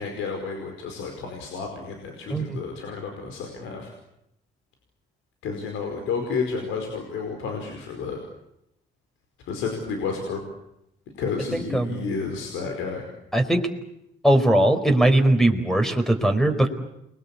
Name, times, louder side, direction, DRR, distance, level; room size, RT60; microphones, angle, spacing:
voice 1, 0.0-3.9 5.4-8.2 9.4-10.4 11.2-13.0, left 5 dB, 90° left, 3 dB, 5.1 m, -31 dB
voice 2, 11.5-12.0 13.3-13.6 14.2-16.7, right 1 dB, ahead, 8 dB, 4.5 m, -20 dB
29.5 x 22.5 x 8.5 m, 0.82 s
cardioid pair, 90°, 20 cm